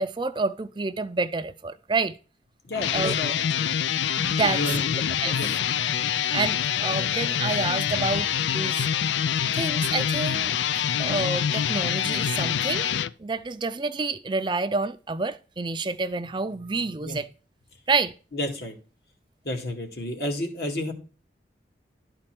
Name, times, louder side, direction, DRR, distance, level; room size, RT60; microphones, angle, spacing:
voice 1, 0.0-2.1 2.9-3.2 4.2-4.6 5.2-5.4 6.3-8.3 8.5-8.9 9.5-10.5 11.0-12.9 13.2-17.3 17.9-18.1, right 3 dB, 25° right, 0.4 m, -28 dB
voice 2, 2.6-3.7 4.4-4.9 5.2-5.5 8.0-8.1 17.0-17.2 18.3-18.8 19.4-20.9, left 1 dB, 65° left, 2.1 m, -31 dB
sound 1, 2.7-13.1, left 9 dB, 90° left, 0.4 m, -25 dB
11.5 x 4.4 x 6.0 m
head